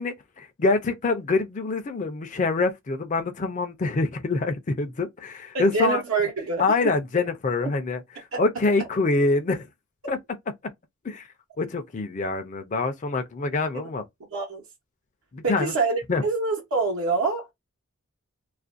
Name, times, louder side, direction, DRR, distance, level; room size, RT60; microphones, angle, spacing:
voice 1, 0.0-6.0 6.6-8.0 8.4-9.7 10.1-10.2 11.0-11.3 11.6-14.0 15.3-15.7 16.1-16.2, left 3 dB, 35° left, 0.4 m, -25 dB
voice 2, 5.5-6.6 8.3-8.4 13.7-13.9 14.3-14.6 15.4-17.5, right 4 dB, 75° right, 0.9 m, -26 dB
2.4 x 2.1 x 2.4 m
head